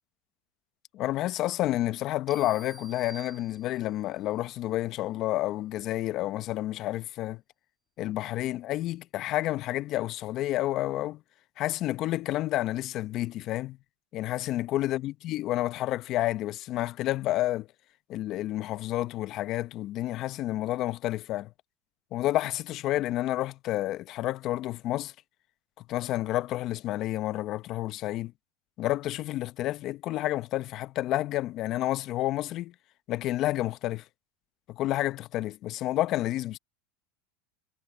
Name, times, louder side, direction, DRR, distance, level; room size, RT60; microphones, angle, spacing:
voice 1, 0.9-7.4 8.0-11.2 11.6-13.8 14.1-17.7 18.1-21.5 22.1-25.1 25.9-28.3 28.8-32.7 33.1-34.0 34.7-36.6, left 15 dB, 50° left, 1.1 m, -30 dB
sound 1, 2.3-4.1, right 2 dB, 10° right, 6.2 m, -49 dB
hypercardioid pair, 105°, 0 cm